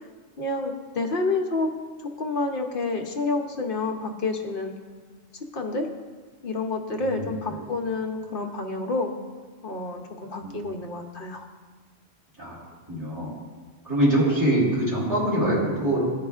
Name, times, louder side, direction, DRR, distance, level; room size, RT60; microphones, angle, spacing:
voice 1, 0.4-1.7 2.0-4.7 5.5-5.9 6.4-9.1 9.6-11.5, left 3 dB, 55° left, 3 dB, 0.8 m, -29 dB
voice 2, 7.0-7.7 10.4-10.7 12.4-12.6 12.9-13.3 13.8-16.0, right 1 dB, 15° right, -7 dB, 2.3 m, -24 dB
13.5 x 4.9 x 2.4 m, 1.5 s
omnidirectional pair, 1.3 m